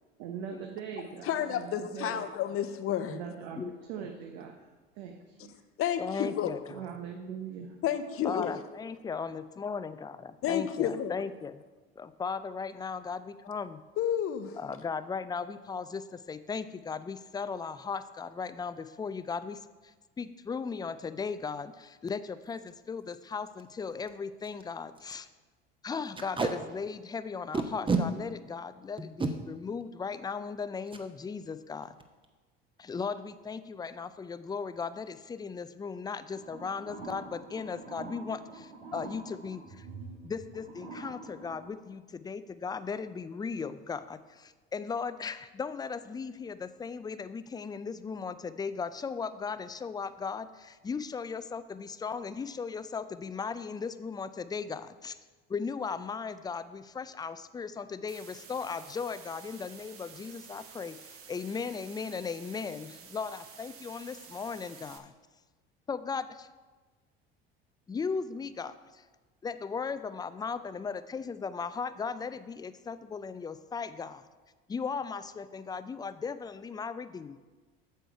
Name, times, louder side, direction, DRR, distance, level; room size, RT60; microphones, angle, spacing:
voice 1, 0.2-2.3 3.1-4.5 5.0-5.6 6.7-7.8, right 7 dB, 70° right, 3 dB, 0.9 m, -41 dB
voice 2, 1.2-3.2 5.8-6.6 7.8-8.6 10.4-11.1 14.0-14.6, left 10 dB, 45° left, 10 dB, 0.8 m, -31 dB
voice 3, 3.5-4.0 6.0-6.6 8.2-11.6 12.0-13.8 14.6-25.3 25.8-32.0 32.8-39.9 40.2-55.2 55.5-65.1 65.9-66.5 67.9-69.0 69.4-74.3 74.7-77.4, left 5 dB, 15° left, 13 dB, 0.4 m, -37 dB
Packing tape duct tape, 22.5-22.7 23.1-23.2 23.5-23.6 24.1-24.2 24.4-24.6 25.0-25.1 26.1-26.5 27.5-28.0 29.0-29.3 30.9-31.0 31.4-31.6 31.8-32.2, right 4 dB, 15° right, 0.9 m, -29 dB
sound 1, 36.3-41.7, right 3 dB, 90° right, 1.5 m, -46 dB
sound 2, 58.1-65.0, right 7 dB, 45° right, 1.1 m, -51 dB
8.7 x 6.7 x 4.6 m, 1.3 s
hypercardioid pair, 70°, 31 cm